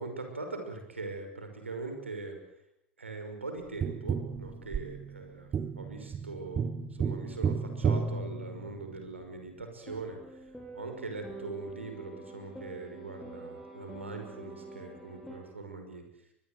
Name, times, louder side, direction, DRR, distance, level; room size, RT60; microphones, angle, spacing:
voice 1, 0.0-2.4 3.0-5.5 5.8-6.7 7.0-10.2 10.7-16.0, right 3 dB, 80° right, 5 dB, 5.8 m, -41 dB
Tap, 3.8-9.1 11.7-11.8, right 6 dB, 25° right, 1.4 m, -33 dB
sound 1, 9.9-15.4, right 2 dB, 5° left, 7.2 m, -46 dB
23.5 x 21.5 x 8.3 m, 0.81 s
figure-of-eight pair, 85°, 7 cm